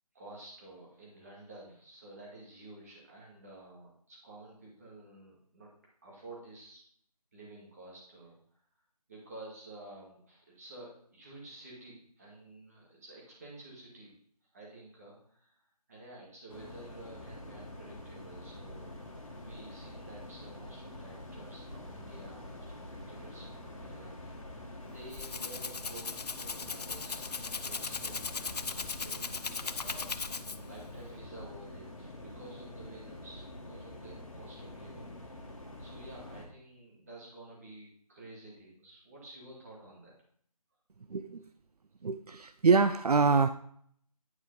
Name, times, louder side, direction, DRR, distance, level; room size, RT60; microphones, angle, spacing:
voice 1, 0.1-5.7 6.0-6.8 7.3-8.4 9.1-14.1 14.4-18.9 19.3-24.6 24.8-30.1 30.7-35.5 35.8-40.1, right 2 dB, 25° right, -4 dB, 2.2 m, -51 dB
sound 1, 16.5-36.5, left 1 dB, 55° left, 1.9 m, -46 dB
Rattle (instrument), 24.9-30.8, left 5 dB, 85° left, 0.5 m, -38 dB
voice 2, 41.1-41.4 42.0-43.5, right 4 dB, 75° right, 11 dB, 0.5 m, -25 dB
9.6 x 4.9 x 4.0 m, 0.62 s
figure-of-eight pair, 170°, 20 cm